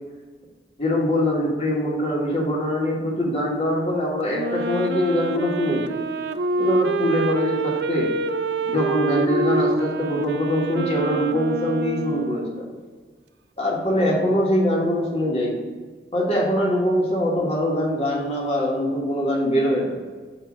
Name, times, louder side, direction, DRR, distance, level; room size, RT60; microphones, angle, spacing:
voice 1, 0.8-5.9 6.6-8.1 8.7-12.7 13.6-15.6 16.1-19.9, left 1 dB, 35° left, -3 dB, 1.3 m, -23 dB
Wind instrument woodwind instrument, 4.3-12.7, right 3 dB, 70° right, 0.3 m, -26 dB
7.1 x 2.7 x 5.8 m, 1.5 s
head